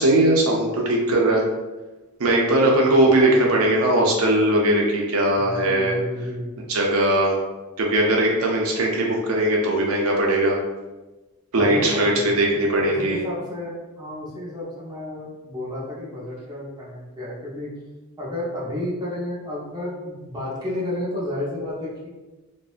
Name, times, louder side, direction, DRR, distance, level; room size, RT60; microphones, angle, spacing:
voice 1, 0.0-1.4 2.2-5.9 6.7-7.4 7.8-10.6 11.5-13.2, right 1 dB, 75° right, -1 dB, 0.5 m, -19 dB
voice 2, 2.5-2.8 3.1-3.4 5.3-6.7 11.6-17.7 18.2-22.1, left 1 dB, 20° right, -7 dB, 0.6 m, -31 dB
2.6 x 2.0 x 2.3 m, 1.2 s
head